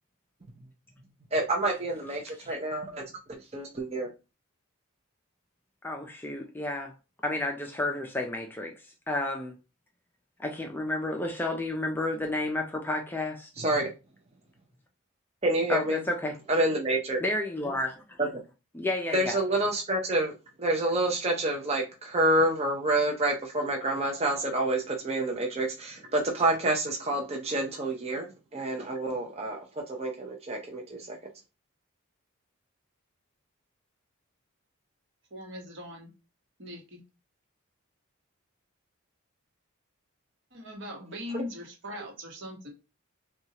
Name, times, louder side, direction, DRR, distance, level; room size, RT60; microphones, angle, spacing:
voice 1, 1.3-3.0 3.3-4.1 13.6-13.9 15.4-16.0 16.5-17.2 18.2-18.3 19.1-20.3 20.6-29.6 29.9-31.2 41.3-41.4, right 2 dB, 30° right, 0.7 m, -28 dB
voice 2, 5.8-6.9 7.2-8.7 9.1-9.5 10.4-13.5 15.7-16.4 17.2-17.9 18.7-19.4, left 2 dB, 10° left, 0.4 m, -31 dB
voice 3, 35.3-36.1 36.6-37.0 40.5-42.7, left 1 dB, 55° right, 1.1 m, -40 dB
6.0 x 2.4 x 2.8 m
head